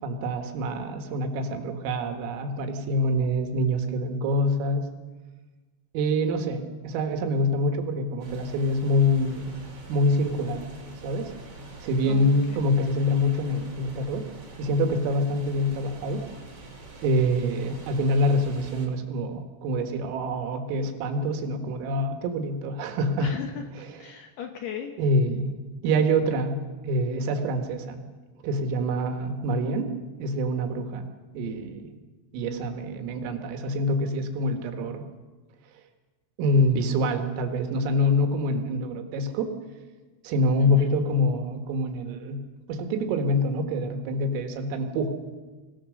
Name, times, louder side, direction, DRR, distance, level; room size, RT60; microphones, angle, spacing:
voice 1, 0.0-4.9 5.9-9.5 9.9-10.6 11.0-11.3 11.8-14.2 14.6-16.2 17.0-23.3 25.0-25.5 25.8-26.6 26.8-28.0 28.4-29.9 30.2-31.1 31.4-31.8 32.3-35.1 36.4-39.5 40.2-42.4 42.7-45.2, equal, 80° right, 6 dB, 4.2 m, -25 dB
sound 1, 8.2-18.9, right 2 dB, 35° right, 3.1 m, -45 dB
voice 2, 12.1-12.6 23.2-23.6 24.0-24.9 40.6-40.9, left 8 dB, 70° left, 5 dB, 2.6 m, -36 dB
24.0 x 17.0 x 6.5 m, 1.3 s
omnidirectional pair, 5.9 m